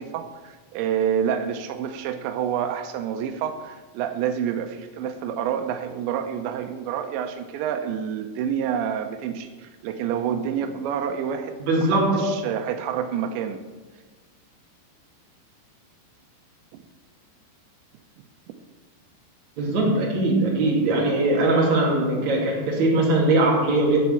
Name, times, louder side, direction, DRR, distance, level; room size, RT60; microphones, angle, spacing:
voice 1, 0.0-13.6 16.7-16.8, right 8 dB, 90° right, 7 dB, 3.1 m, -28 dB
voice 2, 11.6-12.4 19.6-24.0, right 2 dB, 45° right, -2 dB, 3.6 m, -21 dB
14.0 x 5.6 x 8.3 m, 1.3 s
omnidirectional pair, 5.0 m